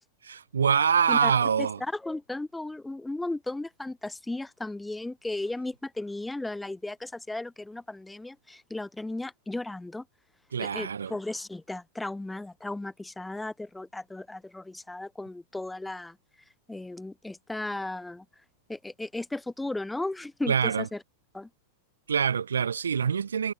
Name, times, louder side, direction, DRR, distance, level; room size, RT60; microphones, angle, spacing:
voice 1, 0.2-1.8 10.5-11.2 20.5-20.9 22.1-23.5, right 7 dB, 85° right, 0.6 m, -25 dB
voice 2, 1.6-10.0 10.6-16.2 16.7-18.2 18.7-21.0 21.3-21.5, left 2 dB, 5° left, 0.6 m, -35 dB
hypercardioid pair, 100°, 0 cm